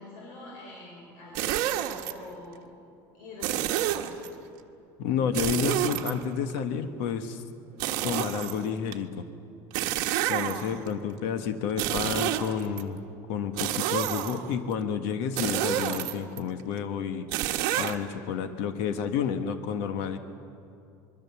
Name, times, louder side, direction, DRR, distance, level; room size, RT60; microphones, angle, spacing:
voice 1, 0.0-2.7 3.1-4.2 10.7-11.3, left 2 dB, 85° left, -3 dB, 5.7 m, -46 dB
sound 1, 1.3-2.1 3.4-4.3 5.3-6.6 7.8-8.9 9.7-10.9 11.7-12.8 13.6-14.5 15.4-16.4 17.3-17.9, right 12 dB, 60° right, 1.4 m, -29 dB
voice 2, 5.0-7.4 8.0-9.3 10.3-13.0 13.3-17.3 17.8-20.2, left 7 dB, 65° left, 8 dB, 1.3 m, -30 dB
25.5 x 22.5 x 7.0 m, 2.7 s
cardioid pair, 170°, 9 cm